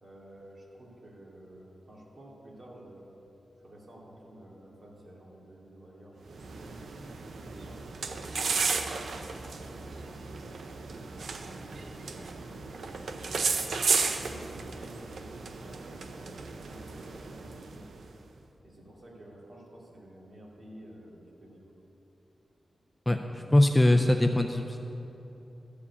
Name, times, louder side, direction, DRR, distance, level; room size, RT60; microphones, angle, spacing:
voice 1, 0.0-3.1 3.6-6.8 7.3-10.5 11.3-13.6 14.1-17.9 18.6-21.7 23.2-23.9, right 1 dB, 40° right, -4 dB, 2.5 m, -51 dB
sound 1, 6.3-18.1, right 4 dB, 80° right, 0.7 m, -34 dB
voice 2, 23.5-24.8, left 1 dB, 10° left, 5 dB, 0.4 m, -22 dB
13.0 x 4.9 x 8.4 m, 3.0 s
wide cardioid pair, 135°, 0 cm